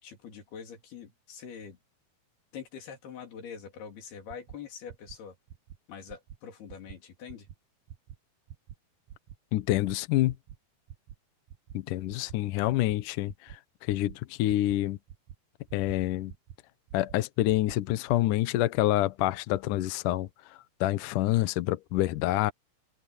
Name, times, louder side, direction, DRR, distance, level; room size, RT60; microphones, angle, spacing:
voice 1, 0.0-1.8 2.5-5.4 5.9-7.5, left 7 dB, 90° left, 5.4 m, -44 dB
sound 1, 4.3-4.6 4.9-5.2 5.5-5.8 6.1-6.4 6.7-7.0 7.3-7.5 7.9-8.2 8.5-8.7 9.1-9.4 9.7-10.0 10.3-10.6 10.9-11.2 11.5-11.8 12.1-12.4 12.7-13.0 13.3-13.6 13.9-14.2 14.5-14.7 15.1-15.4 15.7-16.0 16.3-16.6 16.9-17.2 17.5-17.8 18.1-18.2, right 10 dB, 75° right, 1.7 m, -46 dB
voice 2, 9.5-10.4 11.7-15.0 15.7-16.3 16.9-22.5, left 15 dB, 70° left, 2.2 m, -27 dB
omnidirectional pair, 4.4 m